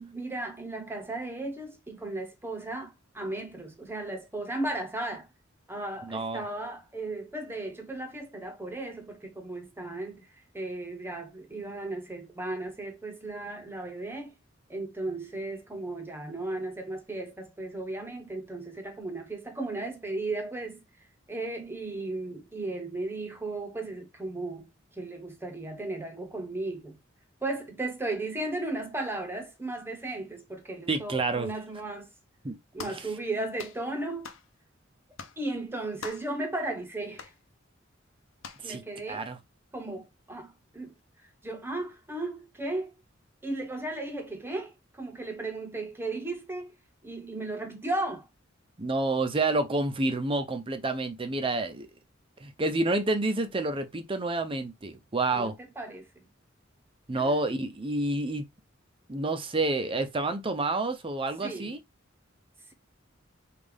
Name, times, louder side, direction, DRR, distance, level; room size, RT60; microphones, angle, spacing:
voice 1, 0.0-5.3 5.7-10.3 10.5-14.3 14.7-20.8 21.3-27.0 27.4-32.1 32.7-34.3 35.4-37.3 38.6-39.3 39.7-41.0 41.4-42.9 43.4-46.7 47.0-48.3 55.3-55.5 55.8-56.2 57.1-57.3 61.4-61.7, right 2 dB, 10° right, 1.0 m, -35 dB
voice 2, 6.0-6.4 30.9-31.5 32.4-32.6 38.6-38.8 39.1-39.4 48.8-51.9 52.4-55.5 57.1-58.5 59.1-61.8, right 2 dB, 25° right, 0.6 m, -29 dB
sound 1, 32.8-33.1 33.6-33.8 34.2-34.5 35.2-35.4 36.0-36.3 37.2-37.4 38.4-38.7, left 5 dB, 85° left, 0.7 m, -42 dB
5.3 x 2.5 x 3.5 m
head